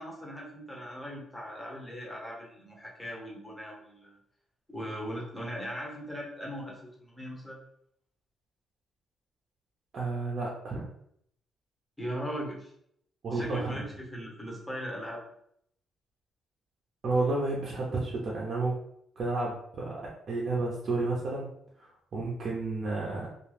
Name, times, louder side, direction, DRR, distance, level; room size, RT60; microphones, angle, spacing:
voice 1, 0.0-4.2 4.7-7.6 12.0-12.7 13.3-15.2, equal, 5° left, -3 dB, 0.9 m, -39 dB
voice 2, 9.9-10.9 13.2-13.8 17.0-18.7 19.2-20.0 20.3-21.5 21.8-23.3, right 3 dB, 50° right, -4 dB, 0.6 m, -31 dB
2.4 x 2.3 x 3.2 m, 0.71 s
cardioid pair, 115°, 0 cm